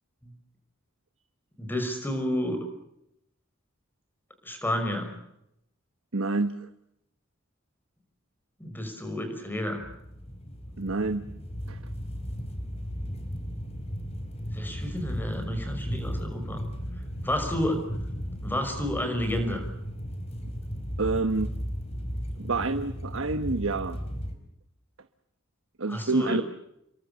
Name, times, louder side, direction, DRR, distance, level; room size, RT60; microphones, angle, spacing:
voice 1, 1.6-2.6 4.4-5.1 8.6-9.8 14.5-16.6 17.2-17.9 18.4-19.7 25.9-26.4, left 1 dB, 10° left, 6 dB, 5.7 m, -30 dB
voice 2, 6.1-6.5 10.8-11.2 11.7-11.8 21.0-21.5 22.4-24.0 25.8-26.4, right 3 dB, 80° right, 9 dB, 1.2 m, -27 dB
sound 1, 9.8-24.3, equal, 30° left, 4.6 m, -35 dB
28.5 x 23.5 x 6.9 m, 0.79 s
head